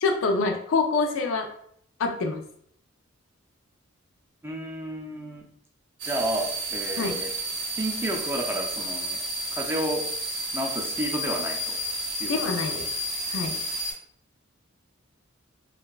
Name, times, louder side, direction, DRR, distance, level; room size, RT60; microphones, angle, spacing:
voice 1, 0.0-1.5 2.0-2.4 7.0-7.2 12.3-12.9 13.3-13.6, left 3 dB, 75° left, 4 dB, 0.4 m, -26 dB
voice 2, 4.4-5.5 6.0-7.3 7.6-9.2 9.5-10.1 10.5-11.8 12.2-12.4, right 1 dB, 10° right, 0 dB, 0.4 m, -31 dB
sound 1, 6.0-13.9, right 1 dB, 60° right, 0.7 m, -31 dB
2.5 x 2.2 x 2.2 m, 0.65 s
head